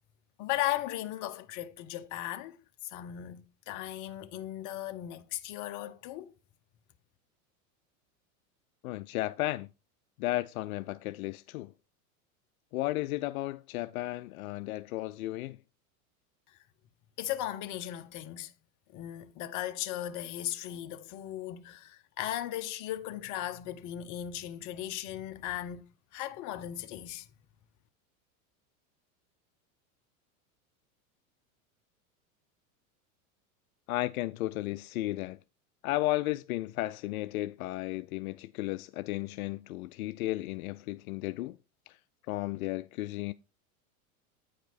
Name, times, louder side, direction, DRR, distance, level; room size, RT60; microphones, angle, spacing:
voice 1, 0.4-2.6 2.8-6.3 16.5-16.6 17.2-18.5 18.9-25.8 26.1-27.3, left 13 dB, 45° left, 0.9 m, -37 dB
voice 2, 8.8-9.7 10.2-11.7 12.7-15.6 33.9-35.4 35.8-41.6 41.9-42.0 42.3-43.3, left 17 dB, 75° left, 0.5 m, -34 dB
9.1 x 5.0 x 4.2 m
hypercardioid pair, 115°, 43 cm